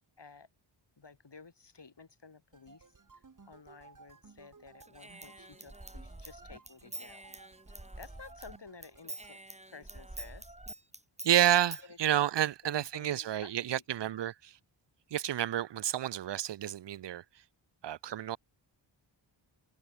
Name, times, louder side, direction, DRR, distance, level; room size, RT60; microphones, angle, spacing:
voice 1, 0.2-0.5 1.0-7.3 7.7-9.4 9.7-10.6 11.8-12.0 12.6-14.3, left 4 dB, 55° left, 7.4 m, -53 dB
sound 1, 2.5-9.4, right 4 dB, 40° right, 1.9 m, -59 dB
Human voice / Scissors, 4.8-8.6 8.8-11.9, right 1 dB, 15° right, 2.6 m, -46 dB
voice 2, 11.2-14.5 15.1-17.2 17.8-18.4, right 11 dB, 55° right, 0.6 m, -30 dB
cardioid pair, 60°, 50 cm